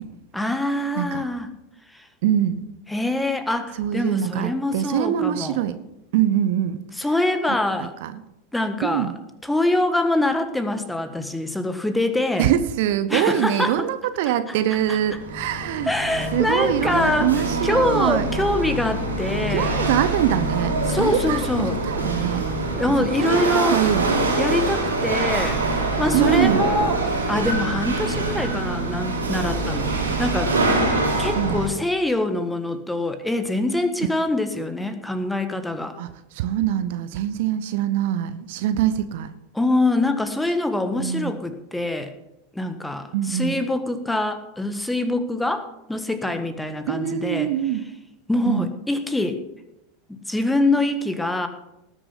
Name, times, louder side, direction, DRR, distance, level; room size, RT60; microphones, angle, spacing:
voice 1, 0.3-1.5 1.9-2.0 2.9-5.6 7.0-7.9 8.5-9.1 9.4-12.5 13.1-13.9 14.9-15.0 15.8-17.3 17.6-19.8 20.9-21.8 22.8-23.8 24.4-25.6 26.0-30.6 31.2-35.9 39.5-42.1 42.5-47.5 48.3-49.4 50.1-51.5, left 2 dB, 5° left, 8 dB, 1.4 m, -24 dB
voice 2, 2.2-2.6 3.8-5.8 6.1-6.8 8.0-8.2 8.8-9.1 12.4-15.9 16.3-18.3 19.5-22.5 23.0-24.2 26.1-26.6 31.3-31.6 36.0-39.3 41.0-41.4 43.1-43.6 46.9-47.9 48.5-48.7, right 11 dB, 55° right, 12 dB, 0.8 m, -24 dB
Chatter / Hiss / Rattle, 14.8-31.7, right 2 dB, 80° right, 3.4 m, -24 dB
19.0 x 6.9 x 5.7 m, 0.89 s
figure-of-eight pair, 85°, 0 cm